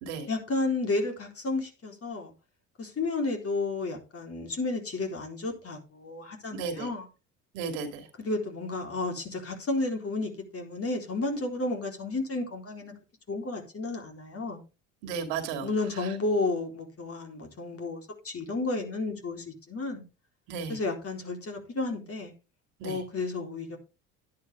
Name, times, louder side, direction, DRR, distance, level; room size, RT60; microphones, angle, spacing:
voice 1, 0.3-2.3 2.8-7.1 8.2-12.9 13.3-14.6 15.6-20.0 20.7-22.3 22.8-23.8, left 3 dB, 35° left, 4.0 m, -32 dB
voice 2, 6.5-6.9 7.5-8.1 15.0-15.7 16.0-16.1 20.5-20.8 22.8-23.0, right 5 dB, 70° right, 2.6 m, -34 dB
11.0 x 10.5 x 3.6 m
hypercardioid pair, 65°, 40 cm